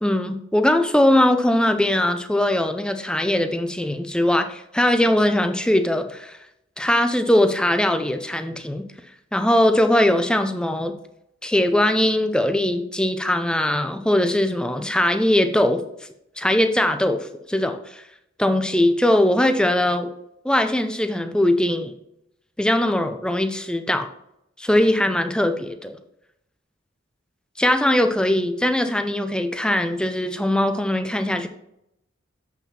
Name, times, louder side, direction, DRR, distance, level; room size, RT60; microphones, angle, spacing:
voice 1, 0.0-6.4 6.8-8.8 9.3-10.9 11.4-15.8 16.4-18.0 18.4-20.1 20.4-21.9 22.6-24.1 24.6-26.0 27.6-31.5, left 1 dB, 5° left, 7 dB, 0.5 m, -20 dB
7.6 x 5.8 x 4.3 m, 0.81 s
head